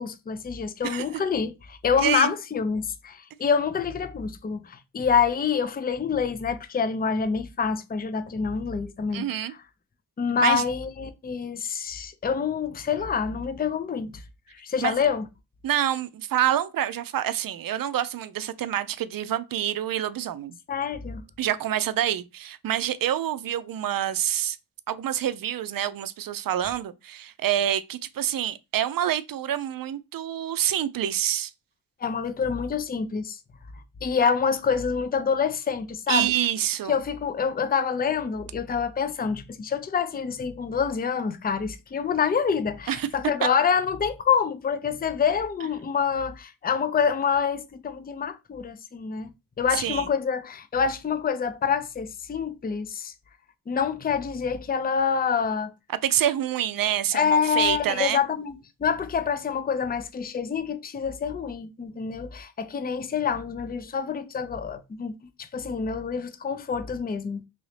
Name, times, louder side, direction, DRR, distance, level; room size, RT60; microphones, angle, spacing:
voice 1, 0.0-9.6 10.2-14.2 14.5-15.2 20.7-21.2 32.0-33.4 34.0-36.3 36.9-49.3 49.6-53.1 53.7-55.7 57.1-65.1 65.4-67.4, left 6 dB, 25° left, 0.5 m, -26 dB
voice 2, 2.0-2.3 9.1-9.5 10.4-10.6 14.8-14.9 15.6-20.6 21.4-24.6 24.9-31.5 36.1-37.0 42.9-43.1 43.4-43.5 49.7-50.1 55.9-58.2, right 11 dB, 55° right, 0.5 m, -27 dB
3.1 x 2.7 x 3.2 m
cardioid pair, 50°, 41 cm